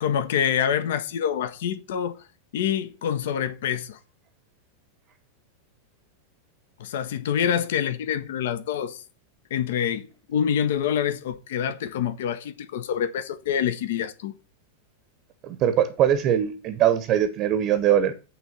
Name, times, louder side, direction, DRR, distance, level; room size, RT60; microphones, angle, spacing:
voice 1, 0.0-2.2 2.5-4.0 6.8-9.0 9.5-14.3, left 9 dB, 55° left, 0.6 m, -26 dB
voice 2, 15.4-18.1, right 10 dB, 35° right, 0.8 m, -21 dB
8.9 x 3.5 x 6.7 m
figure-of-eight pair, 90°, 0 cm